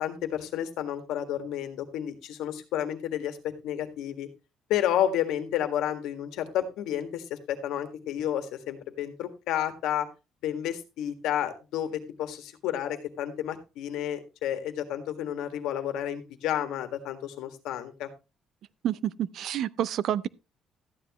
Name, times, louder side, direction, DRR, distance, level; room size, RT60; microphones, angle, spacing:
voice 1, 0.0-4.3 4.7-10.1 10.4-18.1, left 10 dB, 85° left, 1.7 m, -31 dB
voice 2, 18.8-20.3, right 11 dB, 55° right, 0.5 m, -28 dB
13.5 x 9.7 x 3.0 m
cardioid pair, 170°, 0 cm